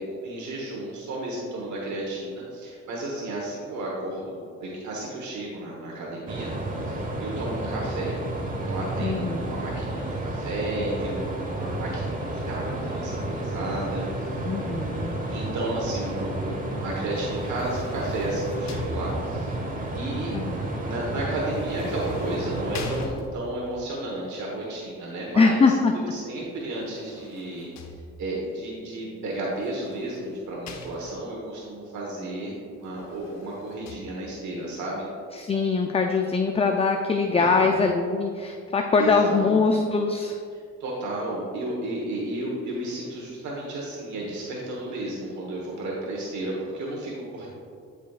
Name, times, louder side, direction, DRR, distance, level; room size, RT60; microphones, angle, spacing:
voice 1, 0.0-6.6 6.9-8.1 8.7-14.4 15.3-16.5 16.8-19.5 19.9-20.3 20.8-27.9 28.2-35.1 37.2-37.8 39.0-39.8 40.8-47.5, right 1 dB, 70° right, -3 dB, 1.3 m, -33 dB
sound 1, 6.3-23.1, right 1 dB, 25° right, 1.1 m, -31 dB
voice 2, 9.0-9.5 14.5-15.1 20.3-20.6 25.4-25.9 35.3-40.4, left 4 dB, 20° left, 4 dB, 0.4 m, -22 dB
sound 2, 17.1-19.6 21.5-23.7 26.6-28.4 29.4-31.4 32.8-34.0, left 3 dB, 65° left, 0.8 m, -42 dB
10.5 x 5.1 x 2.4 m, 2.3 s
cardioid pair, 90°, 30 cm